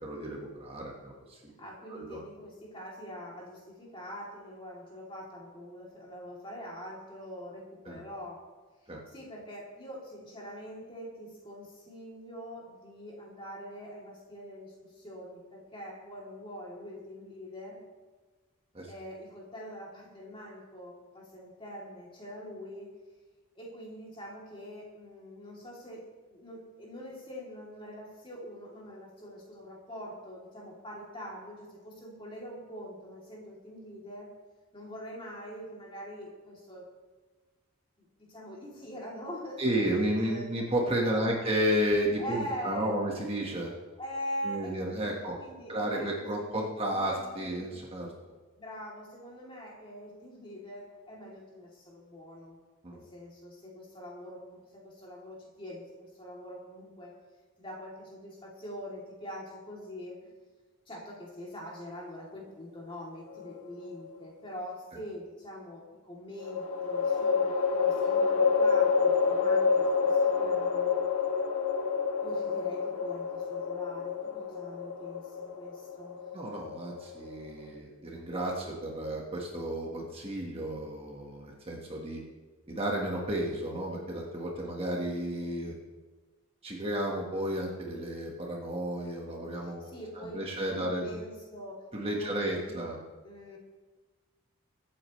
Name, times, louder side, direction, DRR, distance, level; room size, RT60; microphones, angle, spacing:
voice 1, 0.0-1.5 1.9-2.2 7.8-8.0 8.9-9.0 18.7-18.9 39.6-43.7 44.4-45.3 45.7-48.1 52.8-53.0 76.3-82.2 82.7-85.7 86.6-89.9 90.1-91.2 91.9-93.0, right 1 dB, 25° right, -2 dB, 1.5 m, -32 dB
voice 2, 1.6-8.4 8.8-17.8 18.9-22.9 23.5-26.0 26.3-34.3 34.7-36.9 38.3-40.5 40.8-41.3 42.2-43.0 44.0-47.8 48.6-52.6 52.9-57.1 57.6-60.3 60.9-71.0 72.2-76.2 89.5-91.9 92.2-92.8 93.2-93.6, equal, 25° left, -3 dB, 3.0 m, -44 dB
sound 1, 63.3-64.1 66.4-77.7, left 5 dB, 80° left, 1.6 m, -28 dB
23.0 x 8.7 x 3.2 m, 1.3 s
head